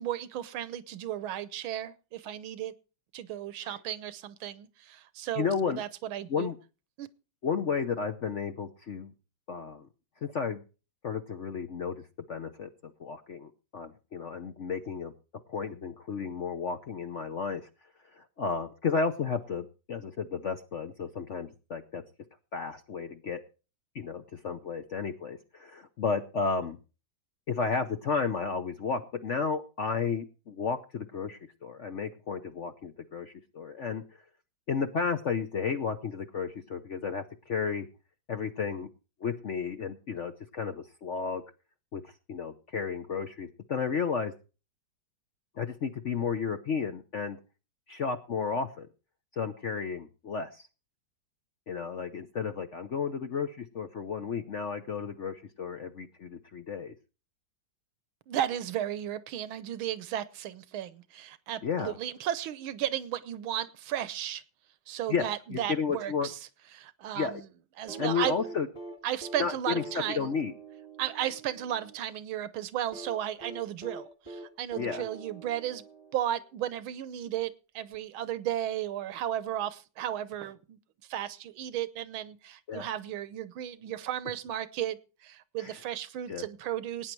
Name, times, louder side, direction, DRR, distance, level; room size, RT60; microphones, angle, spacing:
voice 1, 0.0-2.7 3.1-6.5 7.0-7.1 58.3-64.4 64.9-66.4 66.7-67.5 67.8-68.4 69.0-70.3 71.0-75.8 76.1-80.8 81.1-87.1, right 11 dB, 85° right, 16 dB, 1.6 m, -34 dB
voice 2, 5.4-5.8 6.3-6.6 7.4-9.1 9.5-9.9 10.2-10.6 11.0-12.0 12.3-12.7 13.0-15.1 15.5-17.6 18.1-22.0 22.5-23.4 23.9-26.8 27.5-34.0 34.7-37.9 38.3-38.9 39.2-41.4 41.9-44.3 45.6-47.4 47.9-48.9 49.4-50.7 51.7-56.9 61.6-62.0 65.1-66.3 67.1-67.4 68.0-68.7 69.4-69.8 70.1-70.5 74.8-75.0 82.7-82.9 85.6-85.8 86.3-86.4, left 5 dB, 55° left, 8 dB, 0.8 m, -33 dB
sound 1, 67.9-72.0 72.9-76.5 77.9-78.0, right 2 dB, 15° left, 1.9 m, -45 dB
17.5 x 9.4 x 4.6 m, 0.34 s
omnidirectional pair, 2.2 m